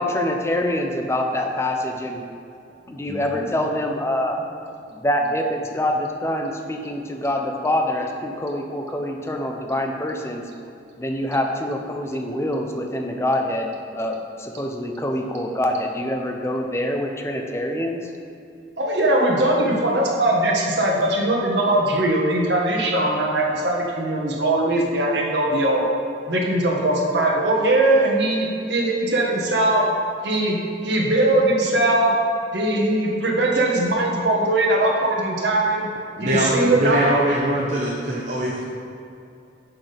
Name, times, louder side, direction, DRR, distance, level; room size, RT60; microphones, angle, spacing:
voice 1, 0.0-2.2 2.9-4.4 5.0-10.4 11.0-18.1, left 1 dB, 15° left, 2 dB, 0.6 m, -25 dB
voice 2, 3.1-3.4 18.8-25.8 26.3-29.8 30.2-30.6 30.8-32.1 32.5-35.9 36.2-37.0, right 1 dB, 65° right, -2 dB, 1.4 m, -20 dB
voice 3, 36.2-38.7, right 1 dB, 45° right, -4 dB, 0.8 m, -22 dB
6.3 x 6.0 x 5.1 m, 2.6 s
head